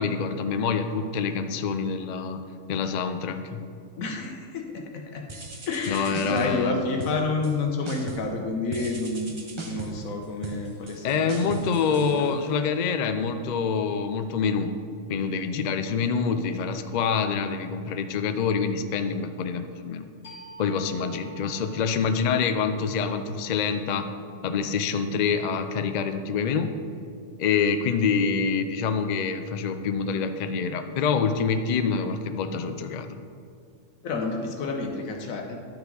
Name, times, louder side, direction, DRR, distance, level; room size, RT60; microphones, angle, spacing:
voice 1, 0.0-2.4 2.7-3.6 5.9-6.8 11.0-14.7 15.1-20.1 20.6-24.1 24.4-26.7 27.4-33.2, left 5 dB, 70° left, 8 dB, 0.4 m, -26 dB
voice 2, 4.0-5.3 5.7-12.3 34.0-35.6, left 3 dB, 85° left, 2 dB, 1.4 m, -30 dB
sound 1, 5.3-6.7 7.0-7.6 7.9-8.4 8.7-12.7, right 2 dB, 30° right, 0.6 m, -38 dB
sound 2, 20.2-25.5, right 4 dB, 50° left, 1.6 m, -50 dB
10.5 x 6.0 x 3.8 m, 2.3 s
omnidirectional pair, 1.4 m